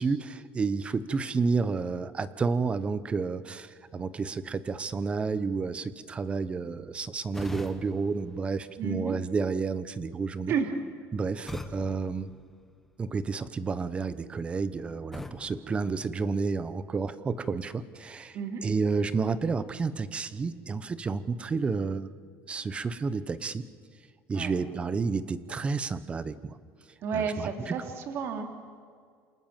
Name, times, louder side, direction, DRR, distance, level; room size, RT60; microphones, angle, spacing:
voice 1, 0.0-10.6 11.1-12.3 13.0-22.1 22.5-23.7 24.3-26.6 27.1-27.9, right 4 dB, 20° right, 15 dB, 0.9 m, -30 dB
sound 1, 7.3-9.3 11.5-13.2 15.1-16.7, left 2 dB, 5° left, 1.3 m, -44 dB
voice 2, 8.8-9.2 10.5-10.7 18.3-18.6 24.3-24.6 27.0-28.5, right 6 dB, 45° right, 5 dB, 2.7 m, -31 dB
28.5 x 27.0 x 7.5 m, 2.1 s
cardioid pair, 160°, 6 cm